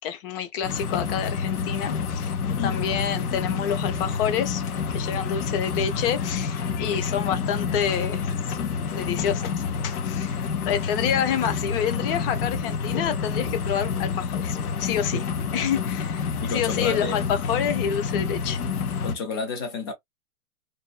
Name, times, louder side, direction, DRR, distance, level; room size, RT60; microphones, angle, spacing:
voice 1, 0.0-2.3 2.6-4.6 4.9-8.7 8.9-15.2 15.5-18.6, left 8 dB, 40° left, 0.7 m, -28 dB
sound 1, 0.6-19.2, left 5 dB, 80° left, 0.8 m, -28 dB
voice 2, 16.4-17.2 19.0-19.9, left 4 dB, 20° left, 0.3 m, -30 dB
2.6 x 2.2 x 2.4 m
hypercardioid pair, 125°, 44 cm